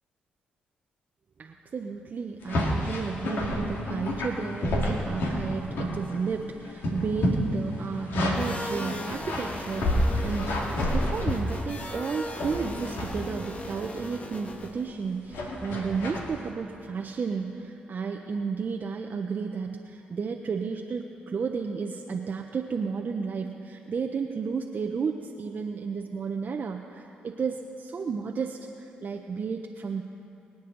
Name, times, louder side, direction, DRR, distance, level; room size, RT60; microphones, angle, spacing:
voice 1, 1.4-10.6 10.9-30.0, right 5 dB, 50° right, 2 dB, 0.8 m, -32 dB
sound 1, 2.4-6.3 6.6-8.6 9.1-11.9 12.4-13.2 13.6-13.9 15.3-16.3, left 1 dB, 70° left, 2.2 m, -29 dB
sound 2, 8.3-14.9, left 1 dB, 35° left, 1.6 m, -38 dB
24.0 x 8.5 x 3.9 m, 2.8 s
supercardioid pair, 50°, 4 cm